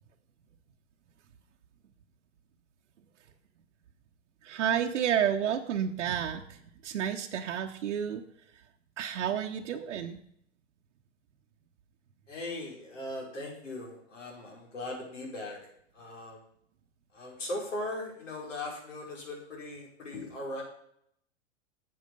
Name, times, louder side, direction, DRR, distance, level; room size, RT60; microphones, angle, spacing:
voice 1, 4.4-8.2 9.0-10.2, right 9 dB, 80° right, 2 dB, 1.0 m, -30 dB
voice 2, 12.3-15.6 15.9-16.4 17.1-20.6, left 1 dB, 85° left, -1 dB, 4.9 m, -39 dB
9.6 x 8.0 x 5.3 m, 0.71 s
hypercardioid pair, 120°, 36 cm